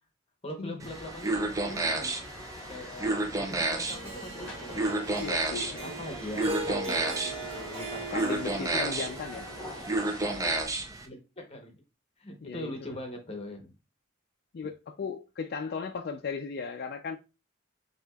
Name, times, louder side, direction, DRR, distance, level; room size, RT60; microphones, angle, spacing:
voice 1, 0.4-2.2 2.7-5.1 5.8-8.0 11.0-11.7 12.2-13.7, left 1 dB, 30° left, 0.9 m, -41 dB
sound 1, 0.8-10.7, left 1 dB, 5° left, 1.5 m, -45 dB
sound 2, 0.8-11.0, right 2 dB, 15° right, 0.4 m, -32 dB
Harp, 3.9-10.2, right 1 dB, 30° right, 0.9 m, -40 dB
voice 2, 5.2-6.0 8.1-9.5 12.4-13.0 14.5-17.2, left 5 dB, 50° left, 0.4 m, -36 dB
5.9 x 2.8 x 2.3 m
head